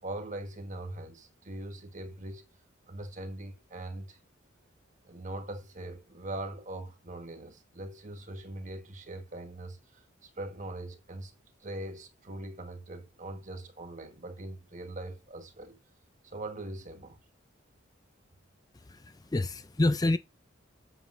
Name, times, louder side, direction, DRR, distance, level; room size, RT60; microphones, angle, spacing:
voice 1, 0.0-2.5 2.9-4.2 5.0-11.3 11.6-15.8 16.2-17.2, right 1 dB, 40° right, 1.5 m, -41 dB
voice 2, 18.7-20.2, left 2 dB, 20° left, 0.4 m, -28 dB
8.2 x 7.7 x 2.6 m
head